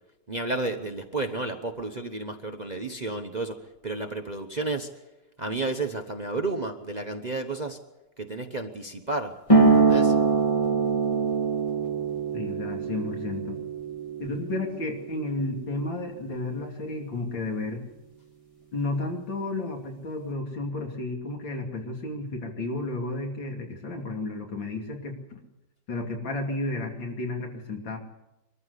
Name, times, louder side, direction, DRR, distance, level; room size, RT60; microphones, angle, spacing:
voice 1, 0.3-3.6 3.8-4.9 5.4-7.8 8.2-9.3 9.6-10.1, right 2 dB, 30° right, 6 dB, 0.9 m, -31 dB
sound 1, 9.5-16.6, right 4 dB, 15° left, 2.9 m, -24 dB
voice 2, 12.3-13.6 14.2-17.8 18.7-25.4 25.9-28.0, left 2 dB, 85° left, 2 dB, 3.5 m, -32 dB
23.5 x 14.0 x 8.2 m, 0.99 s
omnidirectional pair, 2.0 m